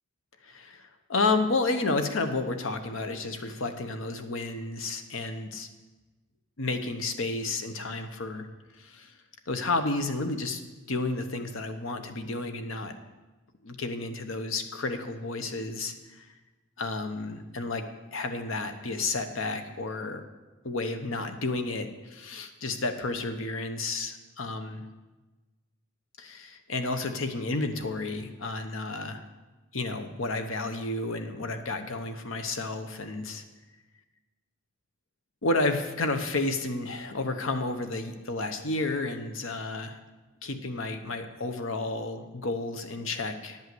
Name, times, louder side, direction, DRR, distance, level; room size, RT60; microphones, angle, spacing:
voice 1, 0.4-5.7 6.6-8.5 8.8-9.1 9.5-10.6 10.9-12.9 13.6-16.3 16.8-17.8 18.1-20.2 20.6-24.8 26.2-29.2 29.7-33.4 35.4-40.0 40.4-43.6, left 3 dB, 75° left, 7 dB, 0.9 m, -31 dB
10.5 x 5.6 x 7.8 m, 1.2 s
head